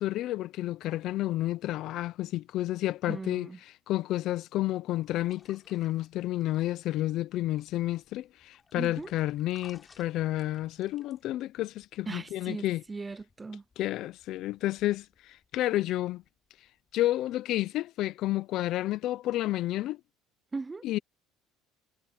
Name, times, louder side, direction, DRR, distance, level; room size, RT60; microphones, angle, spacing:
voice 1, 0.0-3.5 3.9-12.8 13.8-16.2 16.9-20.0 20.8-21.0, left 15 dB, 50° left, 0.5 m, -30 dB
voice 2, 3.1-3.6 8.7-9.1 12.1-13.6 20.5-20.9, right 3 dB, 15° right, 0.4 m, -38 dB
sound 1, 4.9-16.9, left 4 dB, 20° left, 4.9 m, -63 dB
cardioid pair, 160°, 0 cm